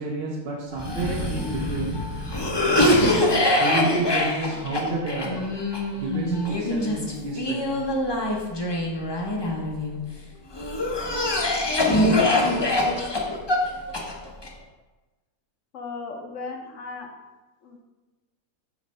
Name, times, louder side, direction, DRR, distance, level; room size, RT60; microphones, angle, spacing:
voice 1, 0.0-5.5 6.0-7.8, right 2 dB, 50° right, -3 dB, 0.9 m, -30 dB
Cough, 0.8-10.0 10.6-14.5, left 1 dB, 25° left, 0.6 m, -24 dB
voice 2, 11.4-12.6 15.7-17.1 17.6-17.8, left 3 dB, 60° left, 3 dB, 1.2 m, -34 dB
7.9 x 3.3 x 5.3 m, 1.2 s
omnidirectional pair, 1.5 m